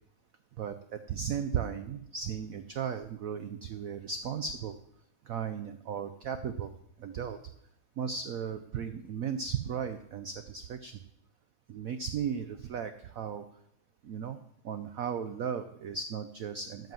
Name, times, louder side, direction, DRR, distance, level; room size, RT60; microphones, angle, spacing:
voice 1, 0.6-4.8 5.3-6.7 7.0-7.4 8.0-10.9 11.7-13.4 14.0-14.4 14.6-16.9, right 7 dB, 85° right, 10 dB, 0.7 m, -36 dB
12.5 x 5.3 x 7.5 m, 0.75 s
omnidirectional pair, 2.2 m